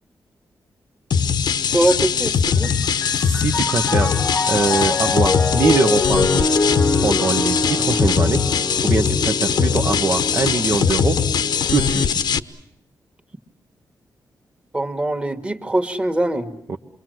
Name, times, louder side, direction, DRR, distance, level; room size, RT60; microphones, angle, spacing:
sound 1, 1.1-12.4, left 7 dB, 75° left, 1.0 m, -21 dB
voice 1, 1.7-2.7 14.7-16.5, right 1 dB, 15° right, 7 dB, 1.7 m, -22 dB
Piano, 2.5-12.1, left 3 dB, 30° left, 0.9 m, -25 dB
voice 2, 3.1-4.1 4.5-6.5 7.0-8.4 8.8-11.2 11.7-12.2 16.7-16.8, right 4 dB, 40° right, 2 dB, 1.0 m, -22 dB
28.5 x 23.0 x 7.7 m, 0.77 s
wide cardioid pair, 125°, 7 cm